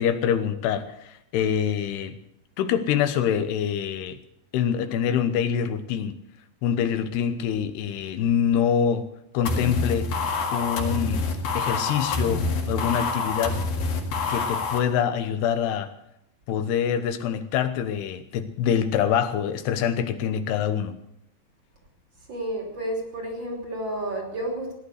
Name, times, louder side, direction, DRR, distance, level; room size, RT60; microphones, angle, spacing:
voice 1, 0.0-2.2 2.6-4.2 4.5-6.2 6.6-9.1 9.3-10.1 10.5-11.3 11.5-13.6 14.3-15.9 16.5-20.9, left 8 dB, 90° left, 9 dB, 3.2 m, -25 dB
sound 1, 9.5-14.8, left 3 dB, 65° left, 3.6 m, -27 dB
voice 2, 22.3-24.7, right 1 dB, 30° right, 0 dB, 3.4 m, -31 dB
17.5 x 11.0 x 6.5 m, 0.79 s
omnidirectional pair, 4.6 m